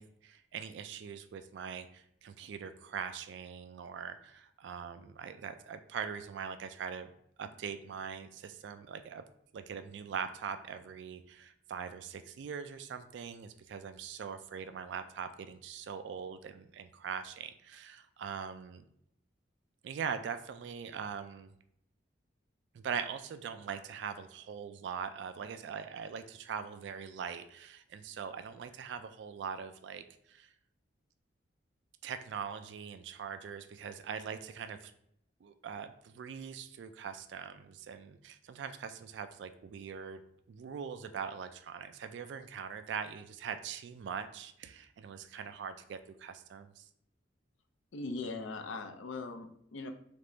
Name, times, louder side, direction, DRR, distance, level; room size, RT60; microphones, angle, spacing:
voice 1, 0.0-7.1 7.4-9.2 9.5-18.8 19.8-21.5 22.7-30.5 32.0-34.9 35.4-40.2 40.5-46.9, right 6 dB, 70° right, 10 dB, 0.3 m, -42 dB
voice 2, 47.9-49.9, left 3 dB, 85° left, 7 dB, 0.5 m, -40 dB
3.5 x 3.2 x 3.9 m, 0.72 s
head